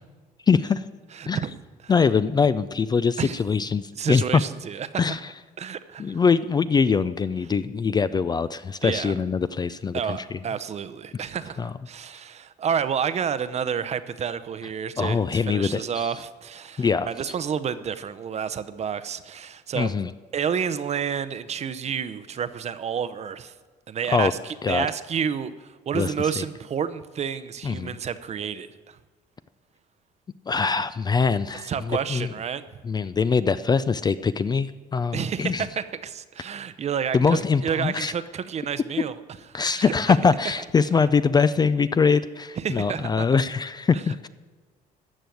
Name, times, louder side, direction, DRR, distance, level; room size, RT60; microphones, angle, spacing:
voice 1, 0.5-0.8 1.3-1.4 1.9-4.4 5.0-5.2 6.0-10.4 11.6-11.7 15.0-15.8 16.8-17.1 19.7-20.1 24.1-24.3 24.6-24.9 25.9-26.1 27.6-28.0 30.5-32.3 32.8-35.6 37.1-38.1 39.5-44.3, left 5 dB, 25° left, 14 dB, 0.4 m, -23 dB
voice 2, 1.1-1.6 3.2-3.4 4.0-5.2 5.6-6.2 8.8-9.1 9.9-19.9 20.3-23.5 23.9-29.0 31.6-32.6 35.1-39.1 39.5-39.9 42.6-43.4 43.9-44.0, right 7 dB, 40° right, 14 dB, 0.7 m, -30 dB
14.0 x 6.3 x 9.2 m, 1.4 s
cardioid pair, 110°, 17 cm